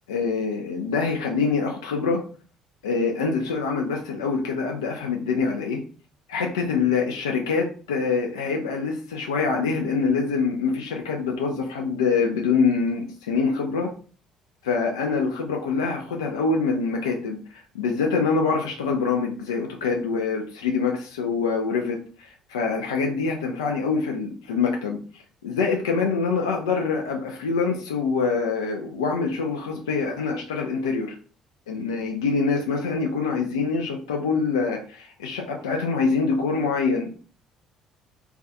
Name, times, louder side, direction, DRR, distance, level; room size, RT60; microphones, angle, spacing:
voice 1, 0.1-2.2 2.8-5.8 6.3-13.9 14.6-31.2 31.7-37.2, left 4 dB, 75° left, 2 dB, 0.3 m, -25 dB
2.2 x 2.2 x 2.6 m, 0.41 s
figure-of-eight pair, 50°, 3 cm